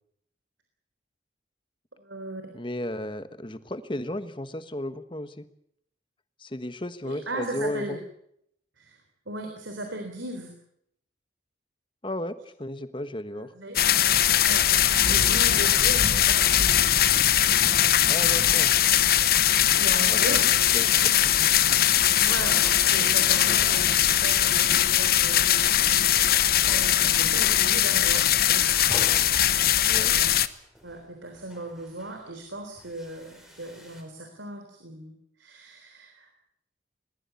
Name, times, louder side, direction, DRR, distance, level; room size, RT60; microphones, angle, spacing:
voice 1, 2.0-2.4 7.1-8.0 8.8-9.0 9.3-10.5 13.3-13.8 14.4-16.9 19.7-20.4 22.2-25.5 25.7-28.9 29.9-30.3 30.8-36.3, right 2 dB, 85° right, 4 dB, 3.7 m, -38 dB
voice 2, 2.5-5.5 6.4-8.0 12.0-13.5 18.1-18.7 20.0-20.4 20.7-21.3 29.9-30.2, left 1 dB, 25° left, 11 dB, 1.2 m, -34 dB
sound 1, 13.8-30.5, left 11 dB, 50° left, 0.9 m, -21 dB
sound 2, 22.2-24.7 25.0-25.5 26.0-26.2 26.5-34.0, equal, ahead, 4.4 m, -45 dB
21.0 x 19.5 x 8.4 m, 0.74 s
head